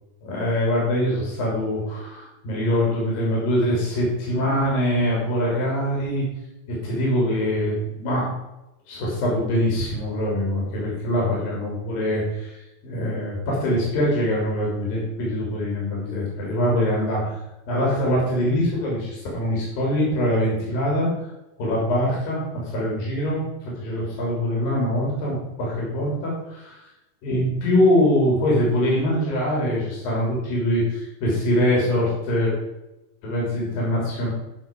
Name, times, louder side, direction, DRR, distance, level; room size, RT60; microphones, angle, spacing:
voice 1, 0.2-6.2 6.8-8.3 8.9-12.6 12.8-17.3 17.7-21.1 21.6-23.5 23.8-26.8 27.2-32.5 33.2-34.3, left 1 dB, 80° left, -3 dB, 5.0 m, -23 dB
12.5 x 6.9 x 5.3 m, 0.94 s
omnidirectional pair, 4.0 m